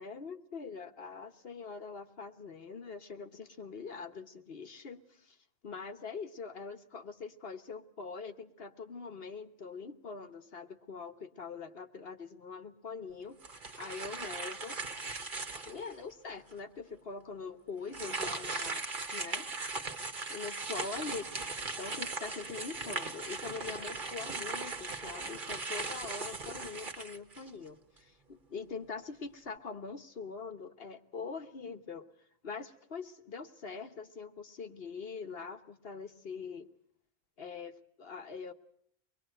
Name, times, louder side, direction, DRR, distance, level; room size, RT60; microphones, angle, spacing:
voice 1, 0.0-5.4 5.6-13.4 13.8-14.8 15.6-19.5 20.3-21.5 21.8-32.1 32.4-36.7 37.4-38.5, left 5 dB, 60° left, 9 dB, 1.5 m, -43 dB
sound 1, 13.4-15.9 16.5-16.6 17.9-27.7, right 3 dB, 45° right, 1.6 m, -39 dB
24.5 x 21.5 x 7.8 m, 0.67 s
omnidirectional pair, 1.1 m